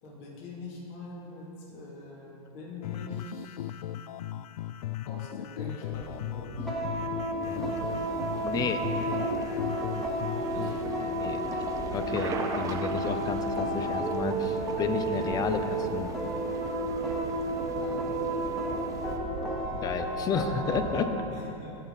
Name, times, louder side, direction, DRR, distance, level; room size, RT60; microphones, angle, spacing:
voice 1, 0.0-3.7 5.0-6.7 10.5-11.1 17.6-18.1 21.3-21.8, left 2 dB, 50° left, -3 dB, 2.6 m, -44 dB
sound 1, 2.8-10.8, left 12 dB, 70° left, 0.4 m, -37 dB
sound 2, 5.9-21.1, right 1 dB, ahead, 1.4 m, -32 dB
voice 2, 7.4-7.8 8.4-8.8 11.1-11.4 11.9-16.1 19.7-21.1, left 6 dB, 20° left, 9 dB, 0.5 m, -31 dB
sound 3, 7.4-19.2, right 5 dB, 15° right, 0.7 m, -40 dB
17.0 x 5.9 x 4.1 m, 2.7 s
hypercardioid pair, 135°, 20 cm